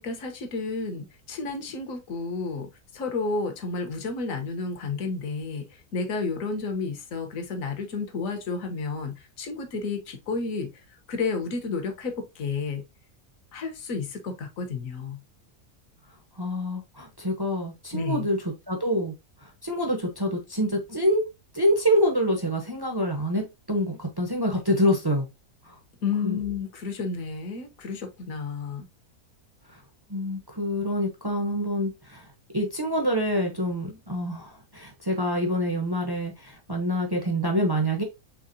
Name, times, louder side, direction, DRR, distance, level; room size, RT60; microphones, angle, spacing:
voice 1, 0.0-10.7 11.1-12.8 13.5-15.2 17.9-18.3 26.0-28.9, left 4 dB, 65° left, 1.4 m, -31 dB
voice 2, 16.4-18.4 18.7-19.1 19.6-21.2 21.5-25.3 26.2-26.4 30.1-32.3 32.5-38.0, equal, 25° right, 0.6 m, -26 dB
4.8 x 3.5 x 2.6 m
omnidirectional pair, 1.6 m